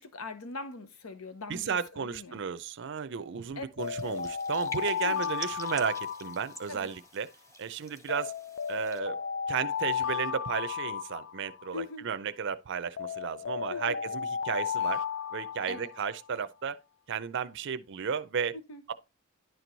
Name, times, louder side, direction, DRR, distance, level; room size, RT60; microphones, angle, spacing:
voice 1, 0.0-2.4 3.6-3.7 4.0-4.1 5.0-5.3 6.7-6.9 11.7-12.1 13.7-14.0 15.7-15.9 18.5-18.8, left 3 dB, 85° left, 0.9 m, -41 dB
voice 2, 1.5-7.3 7.6-8.3 8.7-9.2 9.5-15.0 15.3-16.8 17.1-18.5 18.9-19.0, right 6 dB, 60° right, 0.5 m, -33 dB
sound 1, 3.8-7.0 8.1-11.8 13.0-16.2, left 7 dB, 55° left, 0.4 m, -34 dB
sound 2, 3.8-9.0, left 2 dB, 15° left, 1.0 m, -47 dB
10.5 x 4.6 x 4.0 m
head